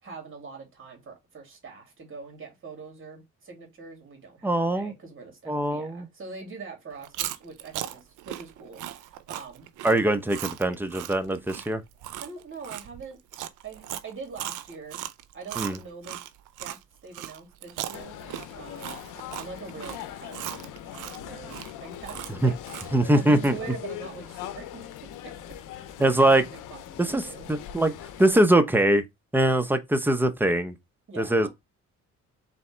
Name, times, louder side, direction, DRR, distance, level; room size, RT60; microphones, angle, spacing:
voice 1, 0.0-9.7 12.2-13.2 13.6-15.0 15.3-16.2 16.6-18.2 18.5-19.0 19.3-20.7 21.1-22.5 22.8-24.9 25.2-27.5 31.1-31.5, right 4 dB, 40° right, 2.6 m, -43 dB
voice 2, 4.4-4.9 5.5-6.1 9.8-11.8 15.6-15.8 22.4-22.5 22.9-23.6 26.0-26.4 27.0-27.2 27.5-27.9 28.2-29.0 29.3-30.7 31.2-31.5, right 1 dB, 5° right, 0.7 m, -22 dB
Chewing mastication, 7.0-16.8 17.1-23.1, right 13 dB, 90° right, 0.5 m, -38 dB
sound 1, 17.9-28.5, left 11 dB, 85° left, 0.7 m, -41 dB
4.2 x 3.5 x 3.2 m
cardioid pair, 90°, 30 cm